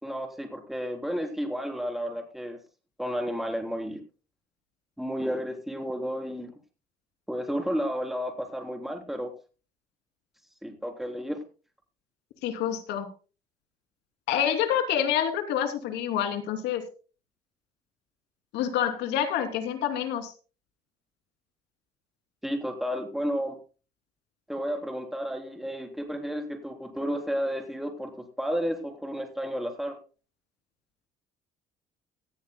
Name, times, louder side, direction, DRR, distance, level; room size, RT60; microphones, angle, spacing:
voice 1, 0.0-2.6 3.0-4.0 5.0-6.5 7.3-9.3 10.6-11.4 22.4-23.6 24.5-30.0, equal, ahead, 3 dB, 3.7 m, -32 dB
voice 2, 12.4-13.1 14.3-16.8 18.5-20.3, left 9 dB, 90° left, 6 dB, 3.0 m, -27 dB
18.5 x 14.0 x 2.2 m, 0.35 s
cardioid pair, 110°, 17 cm